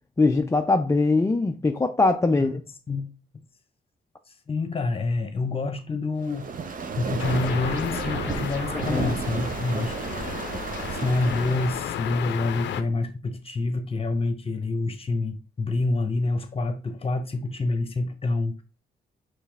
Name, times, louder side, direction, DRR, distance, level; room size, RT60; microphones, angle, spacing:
voice 1, 0.2-2.6 8.7-9.1, left 3 dB, 15° left, 0.4 m, -22 dB
voice 2, 4.5-10.3 10.7-18.6, left 3 dB, 30° left, 0.9 m, -27 dB
sound 1, 6.2-12.0, right 5 dB, 50° right, 0.7 m, -32 dB
sound 2, 7.2-12.8, left 10 dB, 85° left, 0.5 m, -34 dB
4.5 x 3.3 x 3.4 m
cardioid pair, 75°, 18 cm